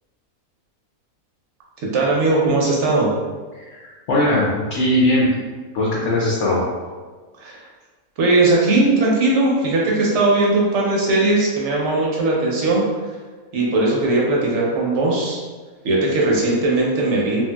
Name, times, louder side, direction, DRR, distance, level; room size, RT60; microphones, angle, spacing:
voice 1, 1.8-3.1 7.4-7.7 8.2-12.8 13.5-15.4 15.8-17.4, right 2 dB, 60° right, -3 dB, 0.8 m, -18 dB
voice 2, 4.1-5.3 5.7-6.6, left 1 dB, 65° left, -5 dB, 0.8 m, -19 dB
2.9 x 2.7 x 2.2 m, 1.4 s
omnidirectional pair, 1.6 m